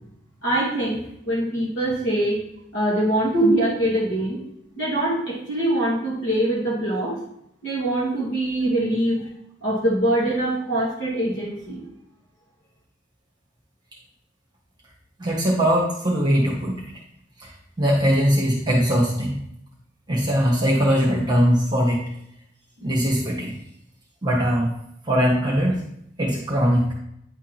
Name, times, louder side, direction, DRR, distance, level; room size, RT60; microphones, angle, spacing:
voice 1, 0.4-2.4 2.7-4.4 4.8-7.1 7.6-9.2 9.6-11.8, right 1 dB, 60° left, -7 dB, 2.6 m, -23 dB
voice 2, 15.2-16.8 17.4-17.5 17.8-19.4 20.1-22.0 22.8-23.5 24.2-24.7 25.1-25.8 26.2-26.9, equal, 20° right, -4 dB, 1.4 m, -20 dB
9.6 x 3.7 x 4.5 m, 0.76 s
head